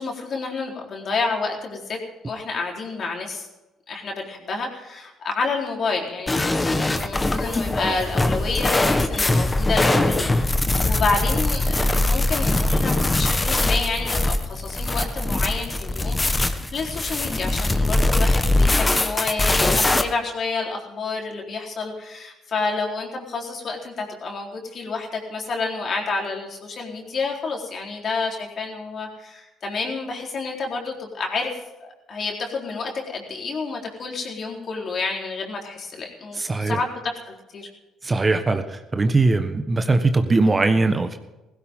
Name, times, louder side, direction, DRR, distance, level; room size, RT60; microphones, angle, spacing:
voice 1, 0.0-2.0 2.2-3.5 3.9-31.5 31.8-37.7, left 4 dB, 50° left, 1 dB, 4.0 m, -29 dB
sound 1, 6.3-20.0, left 2 dB, 20° left, 1.5 m, -21 dB
voice 2, 36.4-36.8 38.0-41.2, right 3 dB, 25° right, 8 dB, 1.4 m, -20 dB
16.5 x 16.0 x 3.8 m, 1.1 s
supercardioid pair, 70°, 0 cm